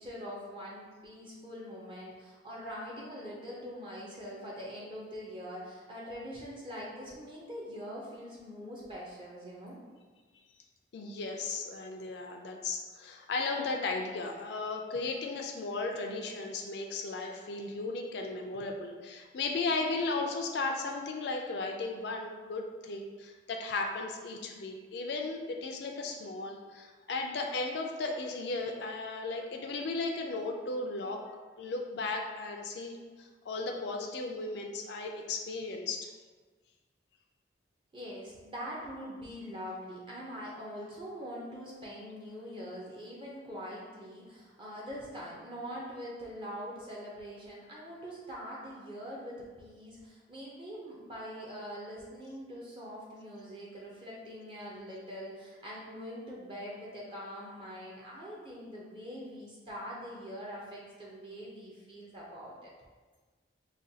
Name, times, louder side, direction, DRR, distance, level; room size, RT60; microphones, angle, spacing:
voice 1, 0.0-9.8 37.9-62.7, equal, 25° right, -5 dB, 0.5 m, -43 dB
voice 2, 10.9-31.2 31.6-36.1, left 3 dB, 65° left, 2 dB, 0.4 m, -35 dB
4.9 x 2.2 x 2.7 m, 1.4 s
head